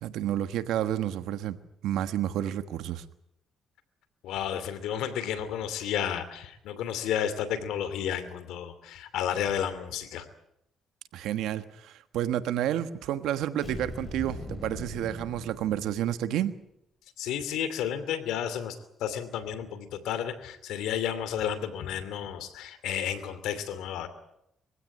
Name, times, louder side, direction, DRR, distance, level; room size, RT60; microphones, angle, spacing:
voice 1, 0.0-1.6 1.8-3.0 11.1-16.5, right 11 dB, 85° right, 11 dB, 1.4 m, -30 dB
voice 2, 4.2-10.3 17.2-24.1, left 9 dB, 90° left, 12 dB, 2.7 m, -32 dB
sound 1, 13.6-16.4, left 2 dB, 25° left, 7.3 m, -40 dB
23.5 x 16.0 x 9.8 m, 0.81 s
cardioid pair, 90°, 0 cm